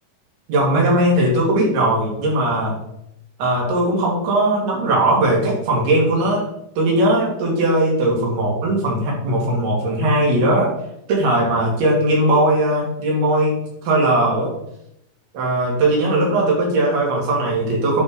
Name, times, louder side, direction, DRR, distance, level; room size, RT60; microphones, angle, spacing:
voice 1, 0.5-2.8 3.4-6.5 6.8-10.8 11.1-14.6 15.3-18.0, right 1 dB, 75° right, -3 dB, 4.3 m, -19 dB
10.0 x 3.8 x 5.3 m, 0.77 s
omnidirectional pair, 4.6 m